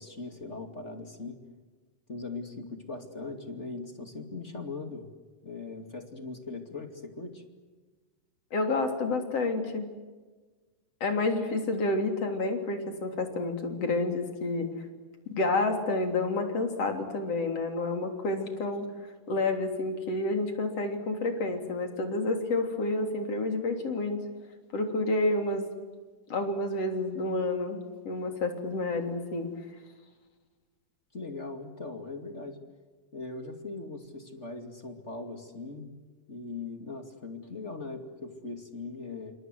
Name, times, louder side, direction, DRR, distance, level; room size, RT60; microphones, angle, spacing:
voice 1, 0.0-1.4 2.1-5.1 5.4-7.4 31.1-32.6 33.1-35.9 36.3-39.3, left 3 dB, 25° left, 6 dB, 2.4 m, -40 dB
voice 2, 8.5-9.9 11.0-14.7 15.4-18.9 19.3-24.2 24.7-25.7 26.3-27.8 28.0-29.5, left 2 dB, 45° left, 5 dB, 4.3 m, -29 dB
28.5 x 26.5 x 7.8 m, 1.3 s
omnidirectional pair, 3.9 m